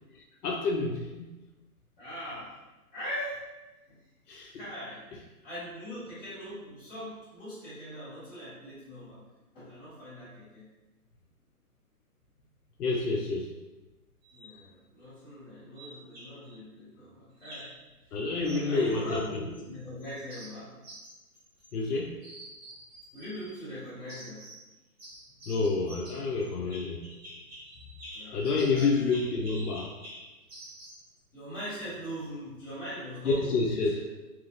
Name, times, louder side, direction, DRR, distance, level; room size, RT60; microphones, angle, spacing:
voice 1, 0.1-1.3 4.3-4.5 12.8-13.5 18.1-19.4 21.7-22.1 25.5-27.0 28.3-29.9 33.2-34.0, left 3 dB, 80° left, 1 dB, 0.6 m, -28 dB
voice 2, 2.0-2.6 2.9-3.5 3.9-4.0 4.5-5.0 5.4-9.2 9.5-10.7 14.3-17.7 18.1-18.2 18.4-20.7 23.1-24.4 28.1-28.9 31.3-34.0, equal, 10° left, -18 dB, 1.5 m, -41 dB
sound 1, 14.2-14.6 15.8-16.6 17.4-17.8 18.4-19.7 20.0-21.9 22.2-23.6 24.1-24.7 25.0-31.1, right 1 dB, 45° right, 1.2 m, -48 dB
2.7 x 2.4 x 2.6 m, 1.1 s
hypercardioid pair, 175°, 45 cm